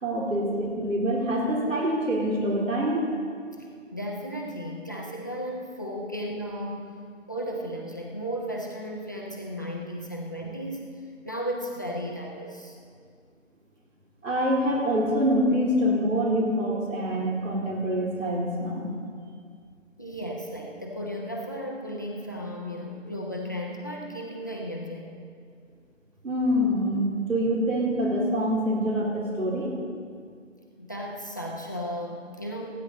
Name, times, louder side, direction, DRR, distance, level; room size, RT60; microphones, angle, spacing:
voice 1, 0.0-3.1 14.2-18.9 26.2-29.7, equal, 80° right, -3 dB, 4.1 m, -25 dB
voice 2, 3.9-7.0 7.3-10.9 11.2-12.8 20.0-25.2 30.8-32.8, equal, 15° left, 0 dB, 0.8 m, -35 dB
29.0 x 9.7 x 4.2 m, 2.1 s
figure-of-eight pair, 170°, 39 cm